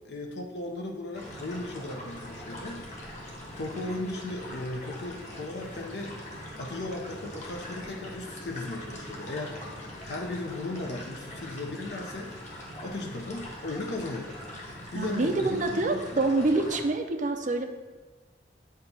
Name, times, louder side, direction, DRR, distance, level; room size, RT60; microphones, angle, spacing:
voice 1, 0.0-3.2 3.6-6.2 6.6-12.3 12.8-14.4 14.7-16.2, left 2 dB, 60° left, 2 dB, 0.6 m, -36 dB
sound 1, 1.1-16.8, left 1 dB, 40° left, 1.3 m, -42 dB
voice 2, 14.9-17.7, right 2 dB, 45° right, 5 dB, 0.5 m, -26 dB
8.8 x 2.9 x 5.3 m, 1.3 s
head